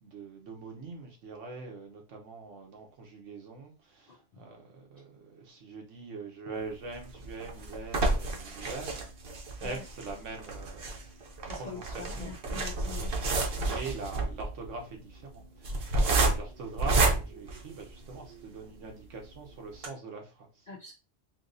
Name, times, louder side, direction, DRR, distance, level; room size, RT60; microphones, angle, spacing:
voice 1, 0.0-9.1 9.6-11.0 11.5-12.3 13.5-20.7, right 3 dB, 85° right, 1.3 m, -43 dB
voice 2, 4.1-4.4 9.6-9.8 11.5-13.1 13.6-13.8 20.7-20.9, left 4 dB, 60° left, 0.4 m, -44 dB
sound 1, 6.9-18.3 18.8-18.9 19.2-19.3 19.7-19.9, right 2 dB, 60° right, 0.9 m, -30 dB
3.4 x 2.8 x 2.6 m
omnidirectional pair, 1.2 m